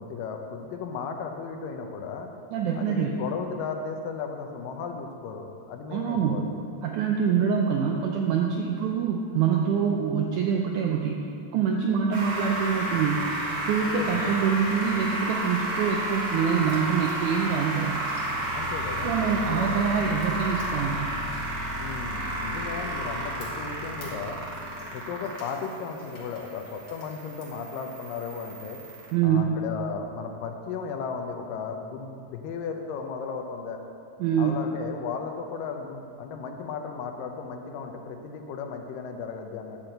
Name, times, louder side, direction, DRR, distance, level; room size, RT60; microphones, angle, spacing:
voice 1, 0.0-2.3 2.7-6.4 13.8-14.4 18.5-19.8 21.8-24.4 24.9-28.8 29.2-33.8 34.4-39.8, left 5 dB, 80° left, 4 dB, 2.3 m, -35 dB
voice 2, 2.5-3.1 5.9-6.4 6.8-11.3 11.5-13.3 13.7-18.1 19.0-21.1 29.1-29.6 34.2-34.5, right 7 dB, 85° right, 1 dB, 1.7 m, -25 dB
sound 1, 12.1-29.1, right 1 dB, 55° right, 1.2 m, -32 dB
sound 2, 16.5-19.8 20.2-23.1 23.4-27.6, left 2 dB, 45° left, 0.9 m, -53 dB
10.5 x 4.4 x 7.7 m, 2.5 s
omnidirectional pair, 4.1 m